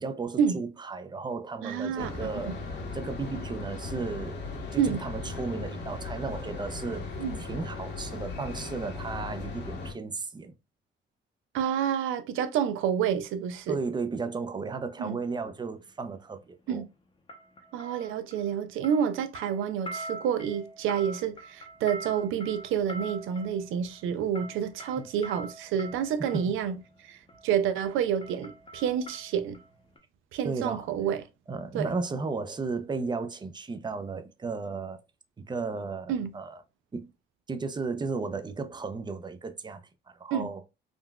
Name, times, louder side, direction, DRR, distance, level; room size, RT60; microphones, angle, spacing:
voice 1, 0.0-4.4 4.7-7.1 7.4-10.5 13.7-16.8 25.0-25.1 30.4-30.9 31.5-35.0 35.4-36.6 36.9-37.1 37.5-39.8 40.1-40.6, right 4 dB, 20° right, 0.5 m, -34 dB
voice 2, 1.6-2.1 2.4-2.5 4.8-5.0 7.2-7.4 11.5-13.8 15.0-15.2 16.7-16.8 17.7-26.7 27.0-27.2 27.4-29.6 30.3-31.2 31.7-31.9 36.1-36.3 40.3-40.5, right 8 dB, 85° right, 0.5 m, -28 dB
sound 1, 2.0-9.9, left 3 dB, 60° left, 1.1 m, -37 dB
sound 2, 15.5-15.6 17.3-18.6 18.8-26.5 27.3-27.5 27.8-29.7 30.0-30.1, right 1 dB, 25° left, 0.7 m, -44 dB
3.7 x 2.3 x 2.2 m
cardioid pair, 90°, 20 cm